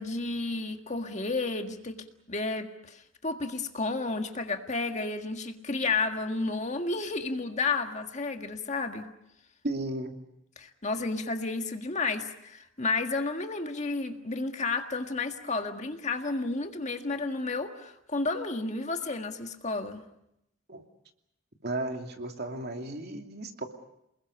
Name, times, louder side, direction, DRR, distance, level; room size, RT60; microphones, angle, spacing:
voice 1, 0.0-9.1 10.6-20.0, left 3 dB, 35° left, 5 dB, 1.7 m, -32 dB
voice 2, 9.6-10.1 20.7-20.8 21.6-23.6, right 2 dB, 55° right, 4 dB, 2.7 m, -34 dB
29.5 x 21.0 x 7.1 m, 0.80 s
head